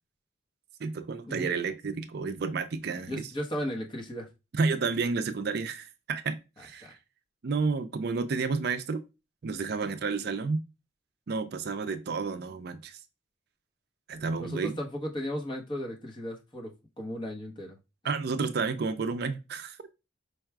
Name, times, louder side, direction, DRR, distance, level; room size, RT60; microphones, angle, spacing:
voice 1, 0.8-3.3 4.5-7.0 7.4-9.0 9.4-10.6 11.3-13.0 14.1-14.7 18.0-19.8, right 4 dB, 50° right, 0.4 m, -31 dB
voice 2, 3.1-4.3 6.8-6.9 14.4-17.8, equal, 25° left, 0.9 m, -35 dB
4.7 x 2.2 x 4.5 m
head